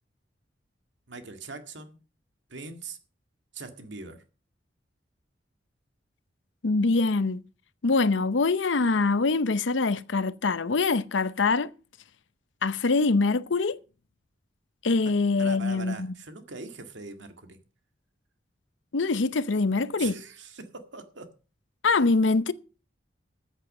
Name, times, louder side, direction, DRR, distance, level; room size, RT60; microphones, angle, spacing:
voice 1, 1.1-2.0 2.5-3.0 3.5-4.2 15.4-17.6 20.0-21.3, right 3 dB, 80° right, 1.9 m, -41 dB
voice 2, 6.6-7.4 7.8-11.7 12.6-13.8 14.8-16.1 18.9-20.2 21.8-22.5, left 3 dB, 85° left, 0.7 m, -24 dB
14.0 x 8.2 x 5.4 m
head